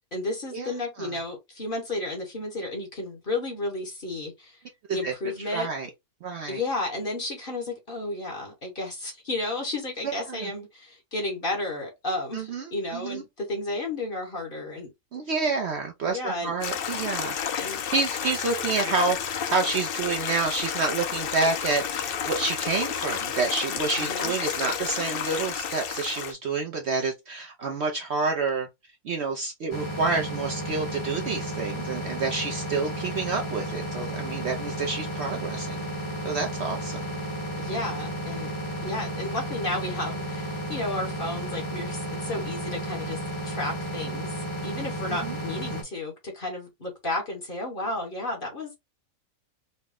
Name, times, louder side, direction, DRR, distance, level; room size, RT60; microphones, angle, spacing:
voice 1, 0.1-4.6 4.9-5.7 6.5-14.9 16.1-16.5 17.5-17.8 24.0-24.3 37.6-38.5 38.8-48.8, left 2 dB, 40° left, 1.4 m, -32 dB
voice 2, 5.5-5.9 6.2-6.6 10.0-10.5 12.3-13.2 15.1-28.7 29.0-35.8 36.2-37.0 45.1-45.3, right 4 dB, 60° right, 0.8 m, -29 dB
Stream, 16.6-26.3, left 8 dB, 65° left, 0.5 m, -31 dB
sound 1, 29.7-45.8, right 1 dB, 20° left, 1.1 m, -33 dB
4.1 x 2.2 x 3.5 m
omnidirectional pair, 1.5 m